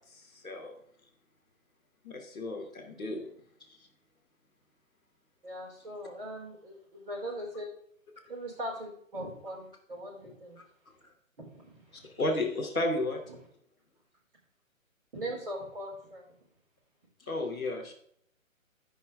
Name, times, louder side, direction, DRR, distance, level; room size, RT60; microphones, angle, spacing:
voice 1, 0.1-0.8 2.0-3.3 12.2-13.2 17.3-17.9, left 2 dB, 5° left, -10 dB, 0.7 m, -33 dB
voice 2, 5.4-7.7 8.3-10.6 11.4-12.1 13.3-13.4 15.1-16.2, right 1 dB, 40° right, -3 dB, 4.6 m, -40 dB
16.5 x 5.7 x 3.4 m, 0.65 s
hypercardioid pair, 170°, 41 cm